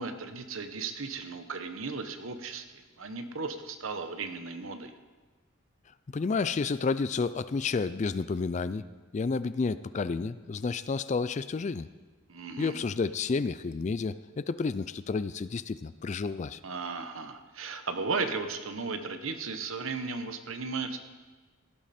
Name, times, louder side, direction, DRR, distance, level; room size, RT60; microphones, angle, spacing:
voice 1, 0.0-4.9 12.3-12.8 16.6-21.0, right 4 dB, 75° right, 8 dB, 1.1 m, -35 dB
voice 2, 6.1-8.9 9.1-11.9 12.6-16.6, left 4 dB, 35° left, 15 dB, 0.3 m, -30 dB
17.0 x 10.5 x 4.3 m, 1.3 s
head